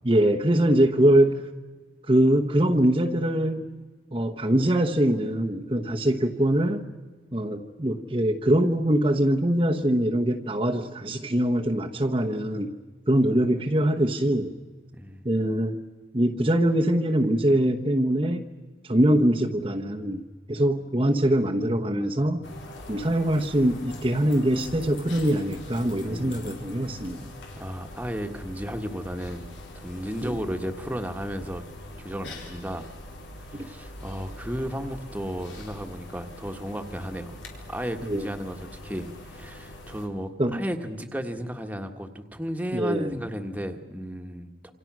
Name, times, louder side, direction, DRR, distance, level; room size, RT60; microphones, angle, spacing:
voice 1, 0.0-1.5 2.1-3.6 4.1-6.8 7.3-12.7 13.1-14.5 15.2-15.8 16.1-18.5 18.9-22.4 22.9-27.2 30.2-30.4 33.5-33.7 38.0-38.3 40.4-40.6 42.7-43.1, right 1 dB, 30° right, 0 dB, 1.1 m, -23 dB
voice 2, 14.9-15.2 26.0-26.5 27.6-31.6 32.0-32.9 33.4-37.3 37.7-44.7, equal, 10° right, 5 dB, 1.6 m, -34 dB
sound 1, 22.4-40.1, left 1 dB, 85° left, 4.3 m, -43 dB
28.0 x 26.5 x 6.3 m, 1.4 s
head